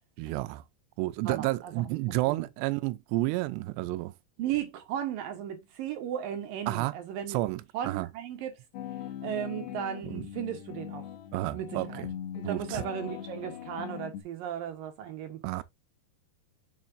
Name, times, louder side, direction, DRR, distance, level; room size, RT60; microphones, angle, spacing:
voice 1, 0.2-0.6 1.0-4.1 6.7-6.9 7.3-8.1 10.1-10.2 11.3-12.1 12.4-12.8 15.4-15.6, right 18 dB, 90° right, 2.8 m, -31 dB
voice 2, 1.2-2.0 2.3-2.5 4.4-7.4 7.7-8.5 9.2-11.1 11.5-12.0 12.3-15.4, right 10 dB, 70° right, 2.4 m, -35 dB
sound 1, 8.7-14.2, left 10 dB, 85° left, 3.3 m, -40 dB
7.2 x 6.9 x 2.6 m
omnidirectional pair, 4.8 m